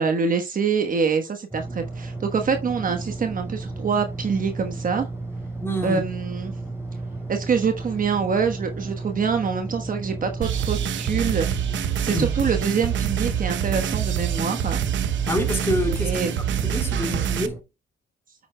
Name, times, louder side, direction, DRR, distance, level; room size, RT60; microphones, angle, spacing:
voice 1, 0.0-5.1 5.8-6.5 7.3-11.5 11.8-14.8 16.0-16.4, right 5 dB, 45° right, 1.2 m, -25 dB
sound 1, 1.5-17.6, right 2 dB, 10° right, 4.3 m, -33 dB
voice 2, 5.6-6.0 12.1-12.3 15.3-17.6, left 1 dB, 10° left, 3.9 m, -27 dB
sound 2, 10.4-17.5, right 10 dB, 70° right, 0.8 m, -26 dB
9.2 x 8.3 x 2.2 m
cardioid pair, 90°, 20 cm